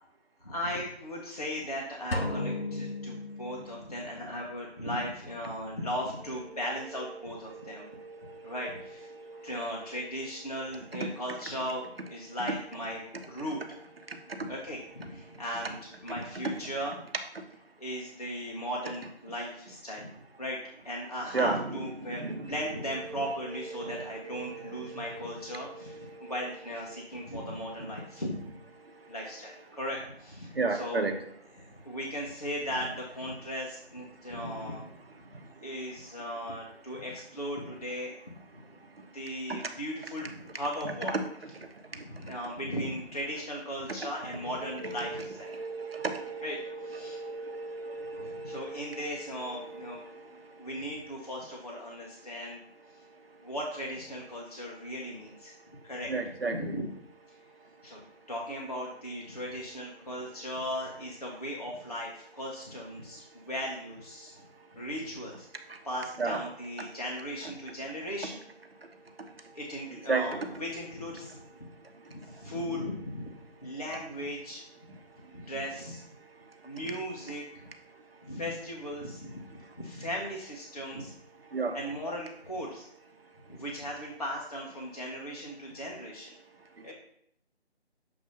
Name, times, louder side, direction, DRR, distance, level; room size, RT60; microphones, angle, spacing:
voice 1, 0.4-7.9 8.4-9.1 9.4-13.0 13.3-13.6 14.4-16.9 17.8-20.1 20.4-20.6 20.8-28.6 29.1-31.1 31.6-34.8 35.6-38.4 39.1-41.2 41.9-45.5 46.4-46.6 46.8-47.2 48.1-50.0 50.6-52.6 53.4-55.5 55.8-56.1 56.5-56.8 57.8-64.4 64.7-65.5 65.8-68.4 69.5-71.7 72.1-73.3 73.6-74.6 75.3-76.0 76.6-77.6 78.2-79.4 79.8-81.1 81.7-82.9 83.5-86.3 86.8-86.9, equal, 35° left, -2 dB, 0.8 m, -37 dB
sound 1, 2.1-4.1, left 2 dB, 60° left, 1.0 m, -34 dB
voice 2, 7.2-8.6 9.1-10.0 14.1-14.5 21.3-22.5 23.2-23.5 23.7-26.3 26.9-27.2 28.8-29.1 30.5-31.2 39.5-39.7 41.6-42.0 44.7-50.7 56.1-56.8 65.7-65.8 66.2-66.4 70.1-70.4 72.1-72.4 76.8-76.9 79.6-79.7 81.5-81.8, right 3 dB, 60° right, 5 dB, 0.9 m, -36 dB
6.7 x 2.6 x 5.4 m, 0.68 s
figure-of-eight pair, 175°, 33 cm